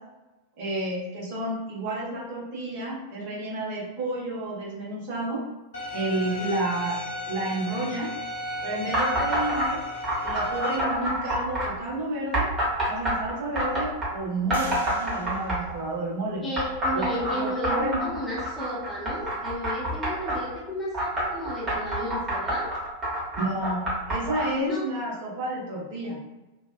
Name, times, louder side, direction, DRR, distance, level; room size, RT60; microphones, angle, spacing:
voice 1, 0.6-5.4 5.9-7.0 7.3-8.1 8.6-9.8 10.2-12.5 12.8-16.4 16.9-18.0 23.4-26.2, right 1 dB, 50° right, -6 dB, 1.1 m, -30 dB
Bowed string instrument, 5.7-10.8, left 1 dB, 65° left, 0.8 m, -34 dB
sound 1, 8.9-9.7 10.0-11.7 12.3-14.1 14.5-15.8 16.6-20.4 20.9-24.5, right 1 dB, 20° right, 1.1 m, -27 dB
sound 2, 12.3-12.4 12.9-13.6 14.5-16.5, right 3 dB, 70° right, 0.4 m, -43 dB
voice 2, 16.4-22.7 24.6-24.9, equal, 15° left, -5 dB, 0.7 m, -33 dB
2.6 x 2.2 x 2.3 m, 1.1 s
figure-of-eight pair, 90°, 0 cm